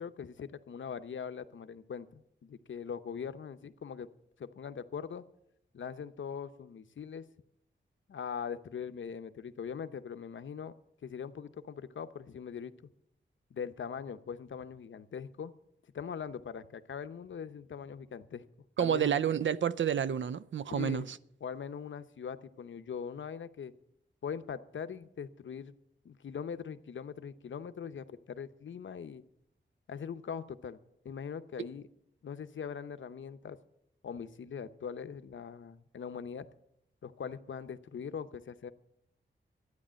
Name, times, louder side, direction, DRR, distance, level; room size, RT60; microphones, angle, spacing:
voice 1, 0.0-4.1 4.4-5.2 5.7-7.2 8.1-10.7 11.0-12.7 13.5-15.5 15.9-18.4 18.8-19.2 20.7-21.1 21.4-23.7 24.2-25.7 26.0-29.2 29.9-30.8 31.0-31.9 32.2-33.6 34.0-36.5 37.0-38.7, left 7 dB, 85° left, 0.8 m, -41 dB
voice 2, 18.8-21.2, right 8 dB, 75° right, 0.5 m, -29 dB
13.0 x 9.7 x 7.5 m
wide cardioid pair, 85°, 19 cm